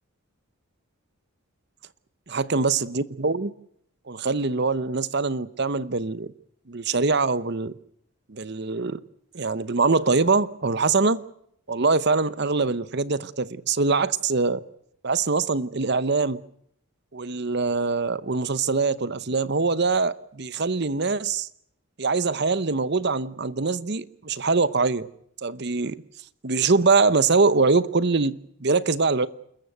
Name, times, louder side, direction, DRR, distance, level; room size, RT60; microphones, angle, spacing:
voice 1, 2.3-3.5 4.1-6.3 6.7-7.7 8.3-9.0 9.3-11.2 11.7-14.6 15.0-16.4 17.1-21.5 22.0-25.1 25.4-26.0 26.4-29.3, right 4 dB, 50° right, 0.8 m, -23 dB
28.5 x 14.0 x 9.2 m
head